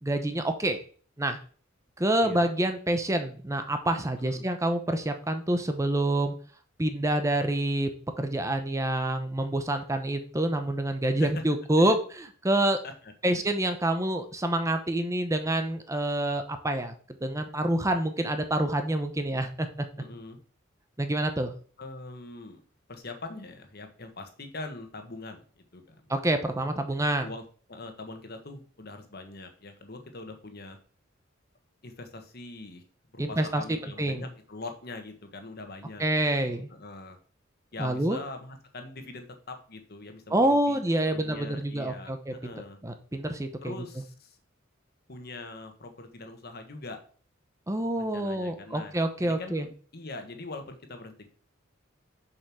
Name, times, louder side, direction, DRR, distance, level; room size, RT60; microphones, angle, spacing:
voice 1, 0.0-0.8 1.2-1.4 2.0-6.3 6.8-7.9 8.2-12.8 13.2-16.9 17.2-19.9 21.0-21.5 26.1-27.3 33.2-33.6 34.0-34.2 36.0-36.7 37.8-38.2 40.3-42.3 42.8-43.7 47.7-49.7, right 1 dB, 15° right, 7 dB, 0.8 m, -27 dB
voice 2, 8.2-8.5 11.2-11.4 11.8-12.0 12.8-13.4 20.0-20.4 21.8-22.6 22.9-26.1 27.2-27.4 27.7-30.8 31.8-32.8 33.1-36.0 36.4-37.2 37.7-40.8 41.0-42.8 43.6-44.4 45.1-47.0 47.9-48.9 49.2-51.3, left 2 dB, 55° left, 6 dB, 1.5 m, -42 dB
7.0 x 5.4 x 6.2 m, 0.43 s
head